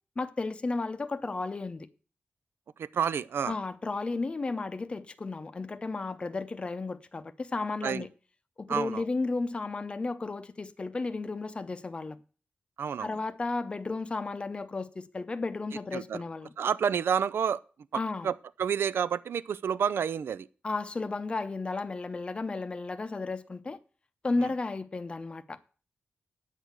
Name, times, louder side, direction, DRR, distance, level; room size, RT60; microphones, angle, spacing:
voice 1, 0.2-1.9 3.5-8.1 8.6-12.2 13.0-16.5 17.9-18.3 20.6-23.8 24.2-25.6, left 3 dB, 30° left, 0.6 m, -33 dB
voice 2, 2.8-3.6 7.8-8.1 8.7-9.0 12.8-13.1 15.9-16.2 16.6-17.6 17.9-20.5, right 7 dB, 85° right, 0.5 m, -29 dB
8.9 x 6.5 x 8.2 m
wide cardioid pair, 170°, 4 cm